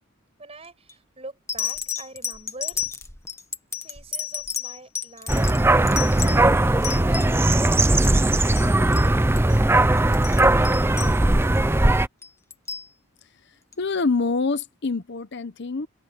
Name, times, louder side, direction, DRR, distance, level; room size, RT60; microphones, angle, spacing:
voice 1, 0.4-2.8 3.8-8.3, right 2 dB, 30° right, 6.0 m, -44 dB
sound 1, 0.6-0.9 1.5-7.6 7.9-8.7 8.9-9.1 9.4-9.6 10.0-11.6 12.2-12.9 13.7-13.8, left 7 dB, 15° left, 1.5 m, -32 dB
sound 2, 5.3-12.1, right 1 dB, 10° right, 0.5 m, -19 dB
voice 2, 13.8-15.9, left 4 dB, 50° left, 0.8 m, -25 dB
head